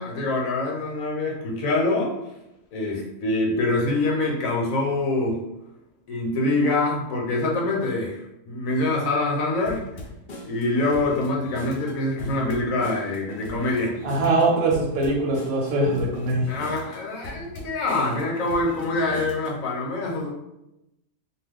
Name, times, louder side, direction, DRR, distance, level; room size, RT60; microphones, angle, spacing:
voice 1, 0.0-2.1 2.7-5.4 6.1-9.8 10.4-13.9 16.5-20.3, left 2 dB, 80° left, -1 dB, 1.1 m, -25 dB
sound 1, 9.7-19.6, left 1 dB, 55° left, 0.5 m, -40 dB
voice 2, 14.0-16.6, right 2 dB, 85° right, -2 dB, 1.1 m, -22 dB
2.4 x 2.3 x 3.5 m, 0.88 s
omnidirectional pair, 1.4 m